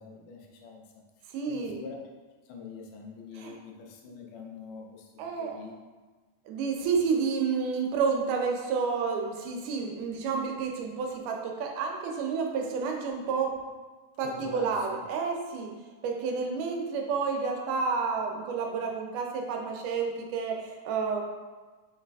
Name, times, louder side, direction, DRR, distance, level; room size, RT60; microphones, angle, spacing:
voice 1, 0.0-2.0 2.4-5.8 14.2-15.0, left 4 dB, 85° left, 0 dB, 2.2 m, -44 dB
voice 2, 1.3-1.8 3.4-3.6 5.2-5.5 6.5-13.5 14.2-15.7 16.0-21.2, right 5 dB, 90° right, 1 dB, 2.1 m, -30 dB
5.0 x 3.2 x 2.3 m, 1.3 s
omnidirectional pair, 3.6 m